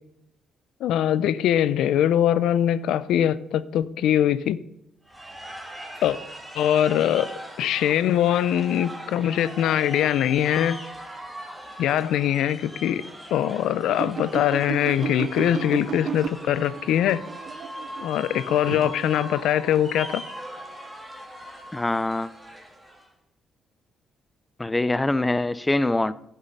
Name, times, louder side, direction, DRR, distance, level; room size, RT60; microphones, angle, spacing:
voice 1, 0.8-4.6 6.0-6.2 6.6-7.3 7.6-10.8 11.8-13.0 13.3-17.2 18.0-20.2, left 10 dB, 85° left, 0.4 m, -22 dB
sound 1, 5.1-23.1, right 1 dB, 5° right, 2.2 m, -40 dB
sound 2, 13.9-19.4, right 8 dB, 60° right, 0.4 m, -34 dB
voice 2, 21.7-22.3 24.6-26.1, left 2 dB, 15° left, 0.4 m, -24 dB
11.0 x 7.3 x 5.3 m
cardioid pair, 90°, 0 cm